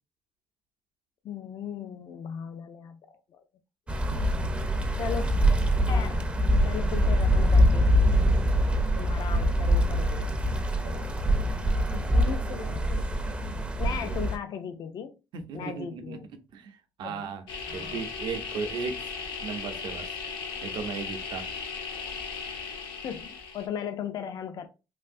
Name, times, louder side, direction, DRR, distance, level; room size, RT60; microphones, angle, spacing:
voice 1, 1.2-3.4 5.0-5.4 5.9-6.3 6.6-7.9 8.9-10.6 10.8-11.1 11.9-13.1 13.8-15.1 15.5-16.3 17.0-17.2 17.7-18.1 23.0-24.7, left 8 dB, 55° left, 0.4 m, -37 dB
sound 1, 3.9-14.4, equal, 15° right, 0.5 m, -24 dB
voice 2, 15.3-16.2 16.5-17.4 17.7-18.9 19.4-20.1 20.6-21.5, right 5 dB, 70° right, 0.6 m, -36 dB
sound 2, 17.5-23.6, left 5 dB, 80° left, 0.8 m, -37 dB
3.3 x 2.6 x 2.5 m
cardioid pair, 125°, 8 cm